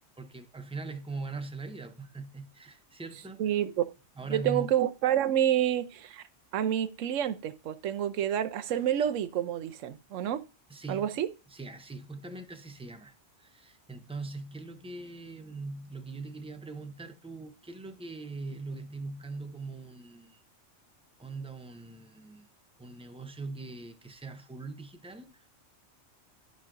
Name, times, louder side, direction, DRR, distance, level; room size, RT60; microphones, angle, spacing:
voice 1, 0.2-3.5 4.2-4.7 10.7-11.1 11.5-20.4 21.2-22.5 22.8-25.5, right 3 dB, 10° right, 0.4 m, -41 dB
voice 2, 3.4-3.9 4.3-6.2 6.5-10.4 10.9-11.3, right 10 dB, 80° right, 1.0 m, -28 dB
12.0 x 5.2 x 2.5 m
omnidirectional pair, 1.3 m